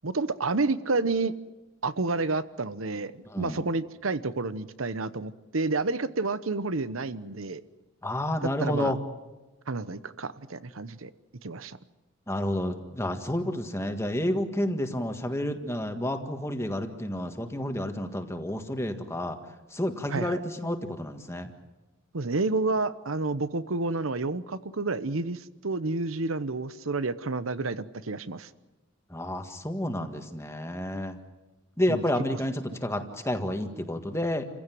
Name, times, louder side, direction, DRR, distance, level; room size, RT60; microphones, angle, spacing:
voice 1, 0.0-1.3 1.8-7.6 8.6-8.9 9.7-11.1 11.4-11.8 20.1-20.4 22.1-28.5 31.9-32.0, right 3 dB, 80° right, 14 dB, 1.0 m, -30 dB
voice 2, 3.2-3.6 8.0-9.0 12.3-19.4 19.7-21.5 29.1-31.2 31.8-34.4, left 1 dB, 15° left, 6 dB, 1.7 m, -30 dB
29.0 x 16.0 x 9.3 m, 1.1 s
head